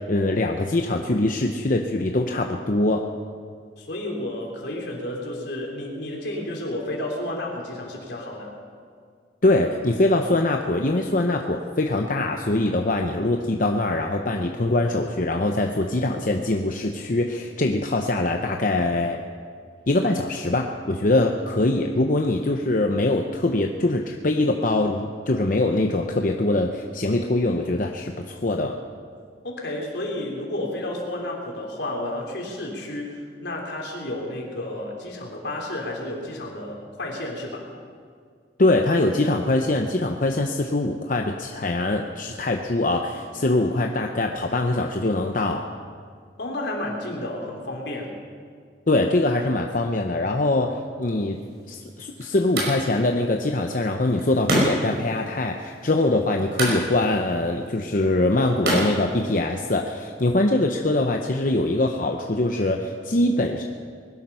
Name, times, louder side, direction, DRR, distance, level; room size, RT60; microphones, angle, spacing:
voice 1, 0.0-3.0 9.4-19.2 19.9-28.8 38.6-45.7 48.9-51.4 51.7-63.6, left 2 dB, 50° left, 3 dB, 0.8 m, -23 dB
voice 2, 3.8-8.5 29.4-37.7 46.4-48.1, left 1 dB, 80° left, -1 dB, 3.6 m, -31 dB
sound 1, 51.3-59.9, right 1 dB, 65° right, 5.3 m, -30 dB
21.0 x 12.0 x 5.6 m, 2.1 s
head